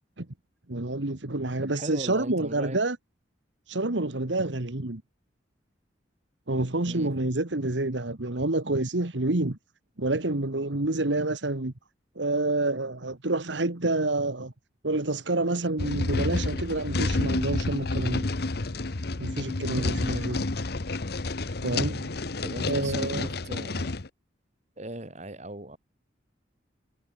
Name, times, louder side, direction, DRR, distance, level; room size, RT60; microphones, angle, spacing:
voice 1, 0.7-3.0 3.7-5.0 6.5-9.6 10.0-11.7 12.1-14.5 14.8-18.3 19.2-20.4 21.6-22.0 22.7-23.3, right 2 dB, 85° right, 1.8 m, -28 dB
voice 2, 1.6-2.8 6.8-7.1 19.9-20.3 22.4-24.0 24.8-25.8, right 1 dB, 40° right, 6.2 m, -38 dB
sound 1, 15.8-24.1, left 2 dB, 60° left, 1.1 m, -29 dB
head